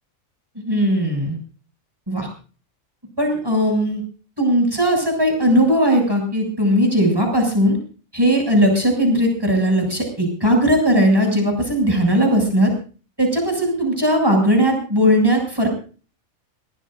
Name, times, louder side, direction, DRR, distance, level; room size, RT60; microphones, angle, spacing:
voice 1, 0.6-1.4 2.1-2.3 3.2-4.0 4.4-7.8 8.1-12.7 13.2-15.7, equal, 15° right, 1 dB, 7.4 m, -18 dB
22.0 x 19.0 x 2.7 m, 0.39 s
omnidirectional pair, 1.4 m